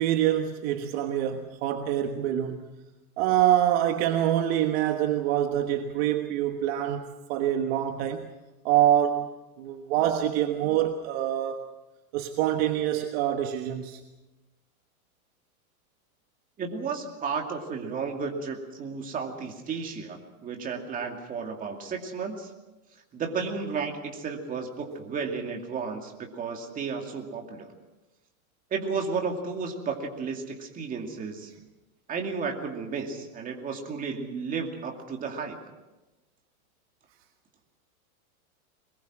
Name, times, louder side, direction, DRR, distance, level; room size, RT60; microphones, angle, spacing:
voice 1, 0.0-2.8 3.2-8.3 8.6-11.6 12.1-14.0, right 11 dB, 45° right, 1.4 m, -25 dB
voice 2, 16.6-22.5 23.1-27.7 28.7-31.5 32.1-35.6, right 5 dB, 20° right, 2.5 m, -33 dB
23.5 x 21.0 x 6.2 m
supercardioid pair, 160°, 43 cm